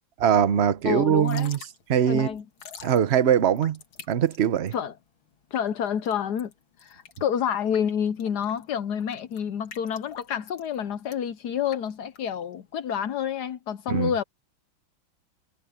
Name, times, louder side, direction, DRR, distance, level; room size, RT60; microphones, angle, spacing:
voice 1, 0.2-1.6 1.9-2.3 2.8-3.8 4.1-4.7 13.9-14.1, right 9 dB, 50° right, 0.8 m, -22 dB
voice 2, 0.8-1.5 2.1-2.4 4.7-4.9 5.5-6.5 6.8-14.2, left 8 dB, 65° left, 1.1 m, -28 dB
Drip / Trickle dribble, 1.1-12.7, left 6 dB, 85° left, 2.7 m, -48 dB
omnidirectional pair, 2.2 m